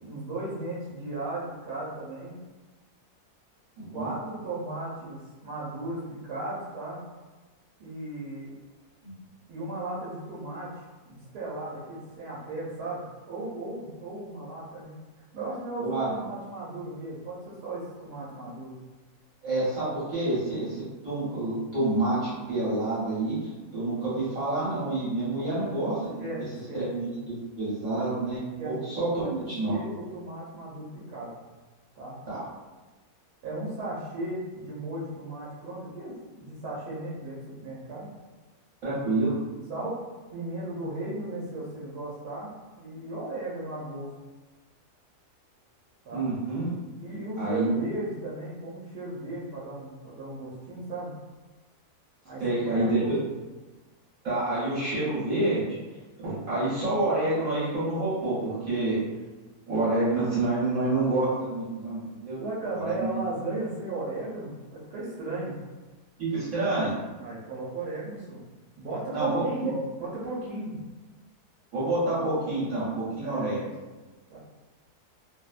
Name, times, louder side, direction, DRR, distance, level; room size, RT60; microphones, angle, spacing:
voice 1, 0.0-2.4 3.9-7.0 7.8-8.5 9.5-10.8 11.1-15.0 15.3-18.8 25.4-25.8 26.2-26.9 28.6-28.7 29.1-31.3 32.0-32.2 33.4-38.1 39.7-40.0 40.3-44.1 46.0-46.3 47.0-51.1 52.2-53.1 62.4-65.6 67.2-68.4 68.8-70.8 73.2-73.5 74.3-74.4, right 2 dB, 85° right, -7 dB, 1.1 m, -36 dB
voice 2, 3.8-4.1 9.0-9.1 15.8-16.1 19.4-26.3 26.7-29.8 32.3-32.4 38.8-39.4 46.1-46.7 47.4-47.8 52.4-53.2 54.2-55.6 56.2-59.0 59.7-62.4 62.8-63.1 66.2-67.0 69.1-69.7 71.7-73.6, right 2 dB, 60° right, -11 dB, 1.2 m, -28 dB
2.8 x 2.0 x 2.3 m, 1.2 s
omnidirectional pair, 1.6 m